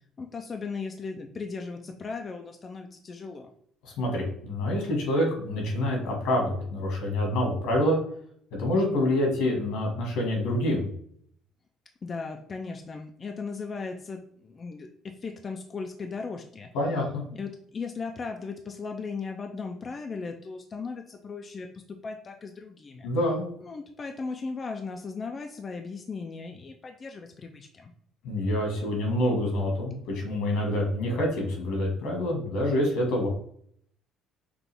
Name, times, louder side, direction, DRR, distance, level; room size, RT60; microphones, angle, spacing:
voice 1, 0.2-3.5 12.0-16.7 17.3-23.1 23.6-27.9, left 4 dB, 30° left, 3 dB, 0.4 m, -37 dB
voice 2, 3.8-8.0 8.6-10.8 16.7-17.3 23.0-23.4 28.2-33.3, left 1 dB, 85° left, 1 dB, 1.9 m, -26 dB
5.9 x 2.4 x 3.5 m, 0.64 s
cardioid pair, 120°, 0 cm